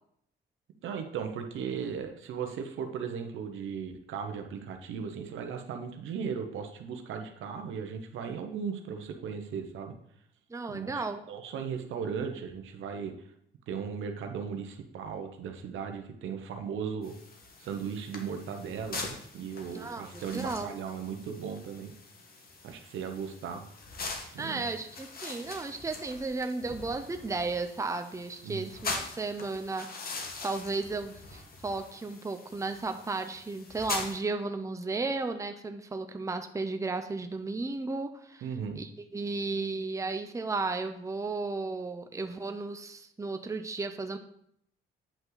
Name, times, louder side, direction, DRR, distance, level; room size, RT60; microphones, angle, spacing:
voice 1, 0.8-9.9 10.7-13.1 13.7-17.1 17.6-19.0 19.3-21.9 22.6-23.7 24.3-24.6 28.4-28.7 38.4-38.8, right 6 dB, 80° right, 5 dB, 1.0 m, -37 dB
voice 2, 10.5-11.2 19.7-20.8 24.4-38.5 38.7-44.2, right 3 dB, 15° right, 7 dB, 0.7 m, -34 dB
sound 1, 17.0-34.2, left 3 dB, 50° left, 1.5 m, -42 dB
8.7 x 5.5 x 4.0 m, 0.70 s
cardioid pair, 90°, 20 cm